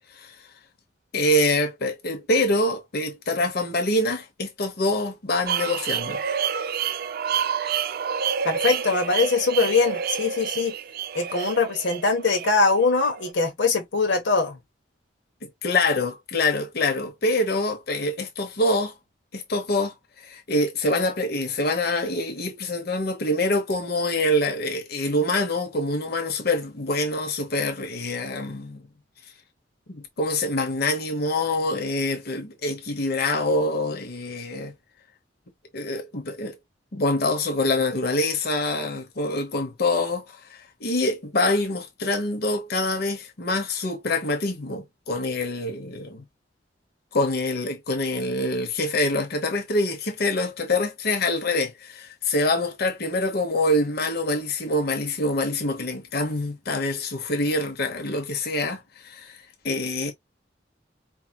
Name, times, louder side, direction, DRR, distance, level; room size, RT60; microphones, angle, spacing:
voice 1, 1.1-6.2 15.4-18.9 19.3-28.8 29.9-34.7 35.7-36.5 36.9-46.2 47.1-59.4 59.6-60.1, left 2 dB, 60° left, 0.9 m, -25 dB
sound 1, 5.5-13.3, right 8 dB, 55° right, 0.4 m, -29 dB
voice 2, 8.4-10.7 11.1-14.6, left 4 dB, 85° left, 1.1 m, -22 dB
4.7 x 2.9 x 2.2 m
head